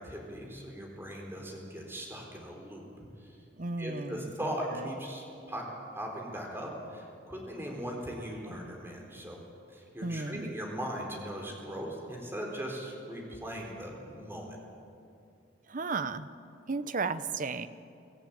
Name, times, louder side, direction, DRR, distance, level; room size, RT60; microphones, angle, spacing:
voice 1, 0.0-2.9 3.2-3.4 3.8-5.7 5.9-9.4 9.7-14.6, equal, 15° right, 0 dB, 4.0 m, -39 dB
voice 2, 3.6-4.3 10.0-10.5 15.7-16.3 16.7-17.7, right 4 dB, 45° right, 12 dB, 0.8 m, -34 dB
23.5 x 15.0 x 8.9 m, 2.5 s
head